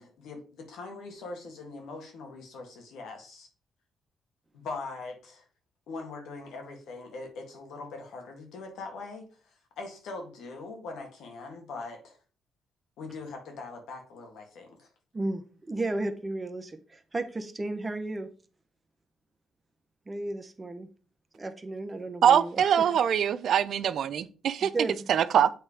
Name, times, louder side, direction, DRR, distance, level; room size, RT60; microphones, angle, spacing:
voice 1, 0.0-3.5 4.5-5.5 5.9-12.2 13.0-14.9, left 3 dB, 80° left, 1.9 m, -42 dB
voice 2, 15.1-18.3 20.1-20.9 21.3-22.9 24.6-25.1, right 2 dB, 25° right, 1.0 m, -34 dB
voice 3, 22.2-24.7 25.1-25.5, right 8 dB, 65° right, 0.5 m, -23 dB
7.9 x 3.3 x 5.0 m
cardioid pair, 90°, 0 cm